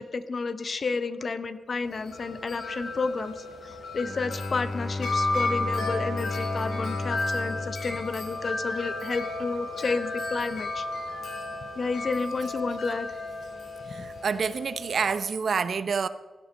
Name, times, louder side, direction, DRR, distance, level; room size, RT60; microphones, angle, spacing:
voice 1, 0.0-10.9 11.8-13.1 14.0-14.1, left 4 dB, 50° left, 13 dB, 0.7 m, -31 dB
Wind chime, 1.8-15.2, left 2 dB, 80° left, 2.7 m, -33 dB
Bowed string instrument, 4.0-8.9, left 2 dB, 15° left, 0.4 m, -34 dB
voice 2, 13.9-16.1, right 5 dB, 60° right, 14 dB, 0.6 m, -28 dB
16.0 x 9.0 x 5.3 m, 1.4 s
wide cardioid pair, 105°, 0 cm